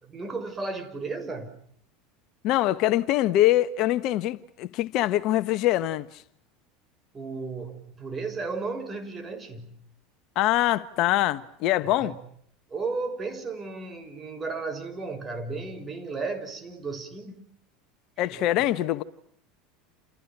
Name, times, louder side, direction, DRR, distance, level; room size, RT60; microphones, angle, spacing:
voice 1, 0.0-1.6 7.1-9.8 12.0-12.1 12.7-17.5 18.2-18.4, right 3 dB, 25° right, 6.4 m, -34 dB
voice 2, 2.4-6.1 10.3-12.2 18.2-19.0, left 14 dB, 55° left, 1.3 m, -24 dB
29.5 x 29.0 x 6.1 m
hypercardioid pair, 90°, 0 cm